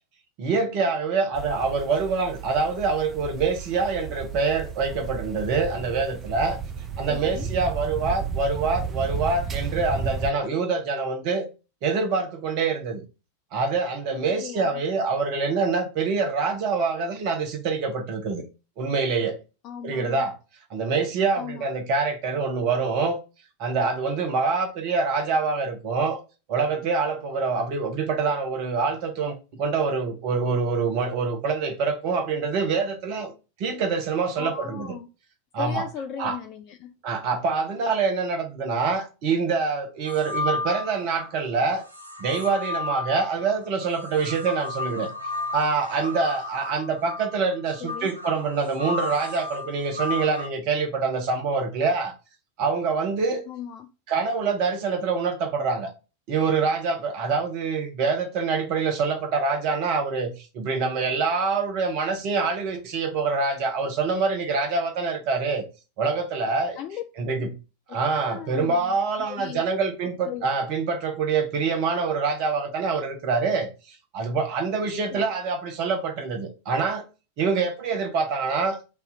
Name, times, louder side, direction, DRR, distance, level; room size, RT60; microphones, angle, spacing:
voice 1, 0.4-6.6 7.0-11.5 11.8-13.0 13.5-18.4 18.8-19.4 19.8-20.3 20.7-23.2 23.6-26.2 26.5-33.3 33.6-34.9 35.5-35.8 36.2-36.4 37.0-41.8 42.2-45.1 45.5-52.1 52.6-53.4 54.1-55.9 56.3-65.6 66.0-66.8 67.2-67.5 67.9-77.0 77.4-78.8, right 4 dB, 45° right, 1.1 m, -25 dB
sound 1, 1.3-10.3, right 6 dB, 20° right, 0.5 m, -33 dB
voice 2, 7.1-7.5 14.1-14.8 19.6-20.3 21.4-21.7 34.4-35.1 35.6-37.0 47.8-48.1 53.5-53.9 66.8-67.0 67.4-67.5 67.9-69.6 70.2-70.5 75.1-75.2, left 8 dB, 35° left, 0.4 m, -37 dB
sound 2, 40.1-41.3 41.9-50.5, left 3 dB, 80° right, 0.6 m, -33 dB
4.3 x 2.8 x 3.9 m
figure-of-eight pair, 90°, 0 cm